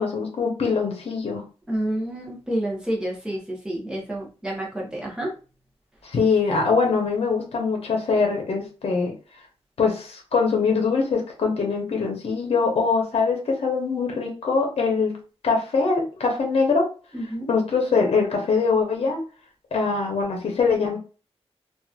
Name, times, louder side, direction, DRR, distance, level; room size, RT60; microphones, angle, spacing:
voice 1, 0.0-1.4 6.0-9.1 9.8-15.2 15.4-16.9 17.5-19.2 19.7-21.0, left 4 dB, 65° left, 1 dB, 0.8 m, -23 dB
voice 2, 1.7-5.3 17.1-17.5, right 1 dB, 5° right, -3 dB, 1.0 m, -29 dB
2.9 x 2.5 x 2.4 m, 0.35 s
wide cardioid pair, 140°, 11 cm